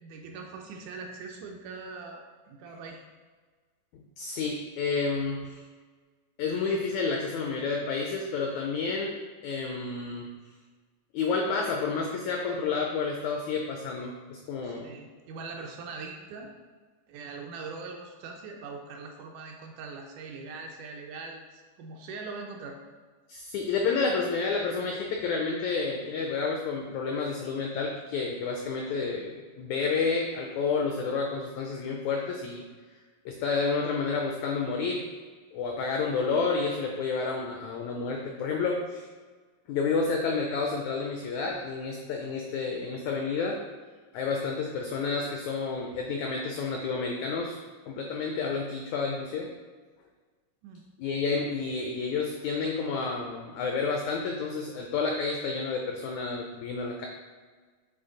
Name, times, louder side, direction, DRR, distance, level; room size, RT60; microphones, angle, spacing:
voice 1, 0.0-3.0 14.6-16.5 17.1-22.8 50.6-50.8, right 4 dB, 80° right, 2 dB, 1.9 m, -42 dB
voice 2, 4.2-5.6 6.4-9.2 9.4-10.3 11.1-14.9 23.3-32.6 33.2-35.1 35.5-39.0 39.7-43.6 44.1-47.6 47.9-49.5 51.0-57.1, left 4 dB, 85° left, 1 dB, 1.6 m, -30 dB
8.2 x 3.0 x 3.9 m, 1.4 s
omnidirectional pair, 3.9 m